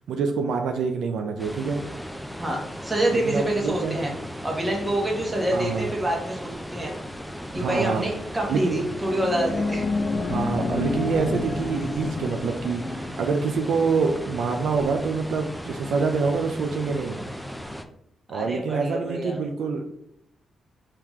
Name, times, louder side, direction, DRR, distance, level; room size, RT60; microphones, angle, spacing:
voice 1, 0.1-1.9 3.1-4.0 5.5-5.8 7.5-8.0 8.5-8.9 10.3-17.2 18.3-19.9, right 5 dB, 80° right, 5 dB, 0.4 m, -26 dB
sound 1, 1.4-17.8, equal, ahead, 0.4 m, -37 dB
voice 2, 2.4-4.1 4.4-6.9 7.5-9.9 18.3-19.4, right 1 dB, 20° right, -1 dB, 1.3 m, -26 dB
sound 2, 8.9-13.6, left 3 dB, 50° left, 0.8 m, -29 dB
4.7 x 2.9 x 3.6 m, 0.76 s
cardioid pair, 95°, 0 cm